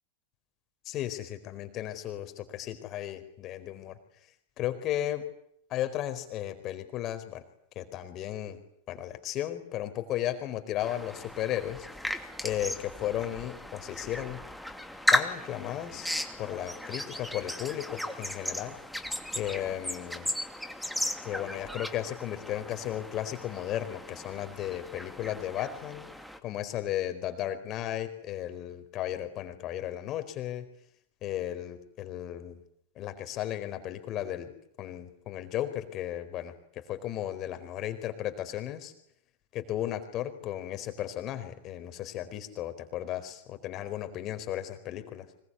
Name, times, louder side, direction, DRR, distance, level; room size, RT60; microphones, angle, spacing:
voice 1, 0.8-4.0 4.6-5.3 5.7-7.4 7.7-8.6 8.9-11.9 12.4-14.4 15.1-16.1 16.4-18.8 19.3-20.3 21.2-26.1 26.4-30.7 31.2-32.6 33.0-34.5 34.8-38.9 39.5-45.3, left 12 dB, 35° left, 9 dB, 4.5 m, -35 dB
sound 1, 10.8-26.4, equal, ahead, 2.8 m, -35 dB
25.5 x 23.0 x 9.8 m, 0.71 s
figure-of-eight pair, 90°, 0 cm